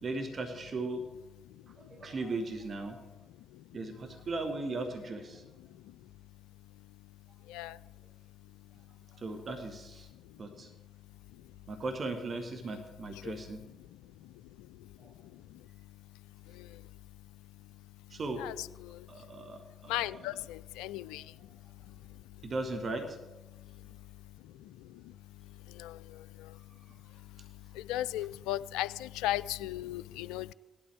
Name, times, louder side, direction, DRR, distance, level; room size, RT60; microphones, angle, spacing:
voice 1, 0.0-1.0 1.8-3.0 3.7-5.4 9.2-10.1 10.4-10.7 11.7-13.6 18.1-18.4 19.1-19.9 22.4-23.2, right 2 dB, 45° right, 7 dB, 1.8 m, -37 dB
voice 2, 19.9-20.3 20.8-21.2 27.9-28.9 29.2-30.5, left 14 dB, 75° left, 18 dB, 0.3 m, -34 dB
17.5 x 12.0 x 3.5 m, 1.1 s
hypercardioid pair, 45°, 0 cm